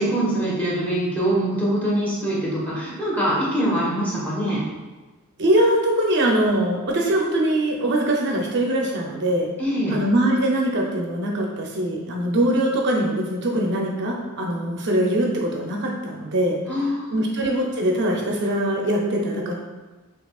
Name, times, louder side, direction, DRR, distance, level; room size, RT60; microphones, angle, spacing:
voice 1, 0.0-4.6 9.6-10.0 16.7-17.2, right 1 dB, 5° left, -7 dB, 1.1 m, -23 dB
voice 2, 5.4-9.5 9.9-16.6 17.1-19.5, right 1 dB, 55° right, -1 dB, 0.6 m, -22 dB
6.0 x 2.9 x 2.3 m, 1.2 s
head